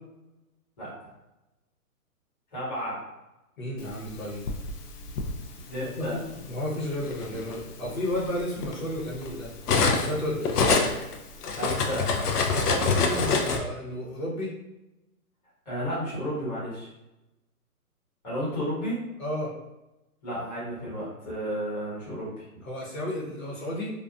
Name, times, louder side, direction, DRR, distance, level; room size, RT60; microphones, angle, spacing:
voice 1, 2.5-3.1 5.7-6.2 11.5-12.2 13.1-13.2 15.6-16.9 18.2-19.0 20.2-22.5, equal, 30° left, -9 dB, 1.0 m, -32 dB
voice 2, 3.6-4.4 5.8-9.5 9.9-10.5 12.5-14.5 19.2-19.5 22.6-23.9, left 1 dB, 60° left, -5 dB, 1.0 m, -32 dB
Cutlery silverware, 4.0-5.3 6.3-6.5 6.9-10.1 10.4-13.6, left 4 dB, 85° left, 0.6 m, -26 dB
2.6 x 2.3 x 2.4 m, 0.97 s
hypercardioid pair, 175°, 45 cm